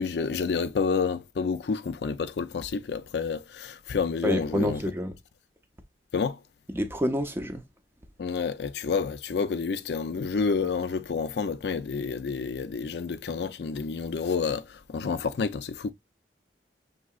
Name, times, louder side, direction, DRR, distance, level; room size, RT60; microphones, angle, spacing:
voice 1, 0.0-4.8 6.1-6.4 8.2-15.9, left 5 dB, 65° left, 0.4 m, -29 dB
voice 2, 4.2-5.2 6.7-7.6, equal, 15° right, 0.5 m, -28 dB
6.1 x 2.8 x 2.3 m
head